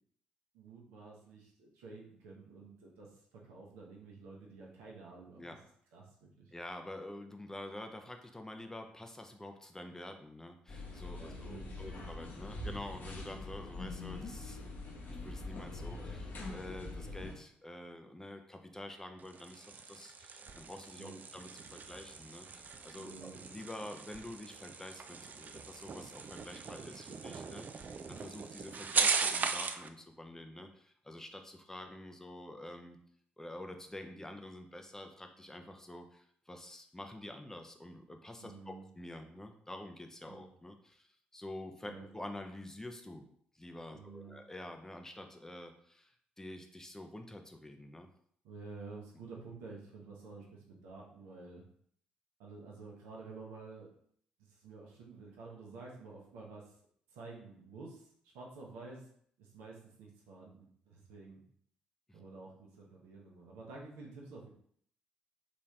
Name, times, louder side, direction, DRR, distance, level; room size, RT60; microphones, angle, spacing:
voice 1, 0.5-5.6 5.9-6.5 11.1-12.1 21.0-21.2 22.9-23.4 38.4-38.8 40.3-40.4 41.9-42.1 43.9-44.4 48.4-51.6 52.4-53.9 54.4-56.6 57.1-58.1 58.3-59.1 59.4-61.4 62.1-64.5, right 3 dB, 70° right, -2 dB, 0.8 m, -50 dB
voice 2, 6.5-33.0 33.4-43.3 43.5-48.1 62.1-62.2, left 1 dB, 10° left, 5 dB, 0.6 m, -48 dB
sound 1, 10.7-17.3, left 2 dB, 45° left, 0.9 m, -43 dB
sound 2, 19.2-29.9, right 5 dB, 40° right, 0.3 m, -38 dB
4.0 x 3.1 x 2.4 m, 0.62 s
figure-of-eight pair, 45°, 5 cm